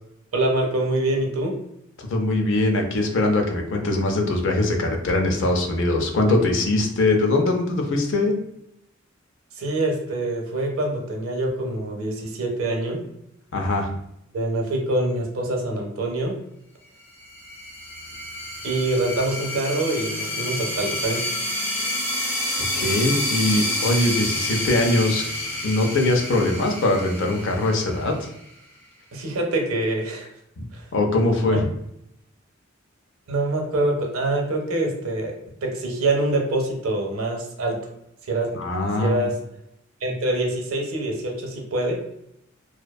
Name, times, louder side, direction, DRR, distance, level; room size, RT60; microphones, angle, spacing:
voice 1, 0.3-1.5 9.5-13.0 14.3-16.3 18.6-21.3 29.1-30.3 30.7-30.8 31.5-31.6 33.3-35.3 35.6-37.8 38.2-38.5 39.0-39.3 40.0-41.9, right 2 dB, 85° right, 1 dB, 0.6 m, -25 dB
voice 2, 2.1-8.3 13.5-13.9 22.7-25.2 25.6-28.3 30.6-30.7 30.9-31.6 38.6-39.3, left 2 dB, 65° left, 3 dB, 0.4 m, -22 dB
sound 1, 17.2-28.5, left 1 dB, 10° left, 0.6 m, -29 dB
2.5 x 2.1 x 2.2 m, 0.78 s
head